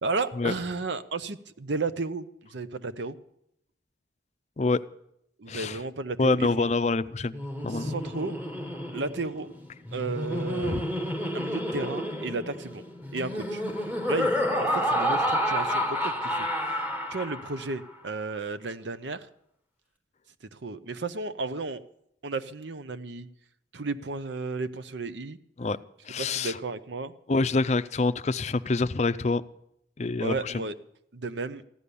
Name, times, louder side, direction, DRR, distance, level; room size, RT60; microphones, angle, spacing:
voice 1, 0.0-3.2 5.4-6.7 7.7-8.4 8.9-9.5 9.9-10.8 11.1-12.8 13.1-13.6 14.1-14.3 14.6-16.5 17.1-19.3 20.5-21.8 22.2-23.3 23.7-25.4 26.2-27.1 30.2-30.7 31.1-31.6, right 3 dB, 70° right, 13 dB, 0.8 m, -33 dB
voice 2, 5.5-5.8 6.2-7.4 7.6-7.9 10.6-10.8 25.6-25.8 26.1-26.6 27.3-29.4 30.0-30.5, left 3 dB, 35° left, 14 dB, 0.5 m, -26 dB
Laughter, 7.2-17.7, equal, 10° right, 1.3 m, -30 dB
15.5 x 11.5 x 6.9 m, 0.75 s
head